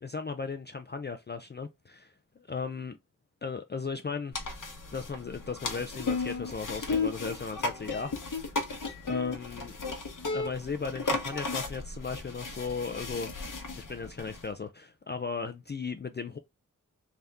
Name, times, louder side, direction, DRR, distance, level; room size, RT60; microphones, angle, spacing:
voice 1, 0.0-2.1 2.5-3.0 3.4-4.3 4.9-8.1 9.0-9.8 10.3-13.3 13.7-16.4, left 5 dB, 35° left, 0.4 m, -36 dB
sound 1, 4.3-14.5, left 3 dB, 65° left, 0.9 m, -35 dB
3.5 x 2.7 x 3.4 m
wide cardioid pair, 80°, 33 cm